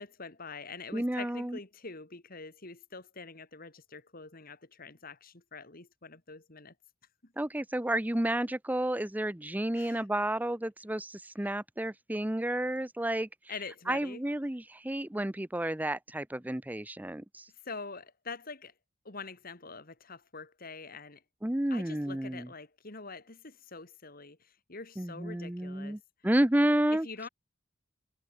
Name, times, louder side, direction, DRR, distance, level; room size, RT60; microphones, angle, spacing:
voice 1, 0.0-6.7 7.2-7.3 9.7-10.0 11.4-11.5 13.5-14.2 17.6-18.7 19.0-21.2 21.7-26.0 26.9-27.3, left 4 dB, 45° left, 2.6 m, -45 dB
voice 2, 0.9-1.6 7.4-13.3 13.9-17.5 21.4-22.5 25.0-27.1, right 1 dB, 10° right, 0.6 m, -31 dB
head